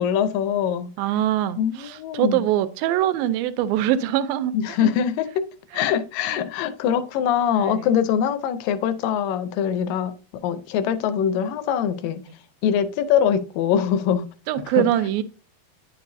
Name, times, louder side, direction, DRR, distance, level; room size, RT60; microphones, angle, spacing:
voice 1, 0.0-0.9 1.6-2.4 4.5-5.5 5.7-12.2 12.6-14.3 14.7-14.9, left 8 dB, 80° left, 2.2 m, -23 dB
voice 2, 1.0-4.6 4.8-4.9 6.3-6.5 7.6-7.8 14.5-15.2, right 12 dB, 85° right, 2.4 m, -23 dB
9.8 x 6.7 x 2.6 m
omnidirectional pair, 4.1 m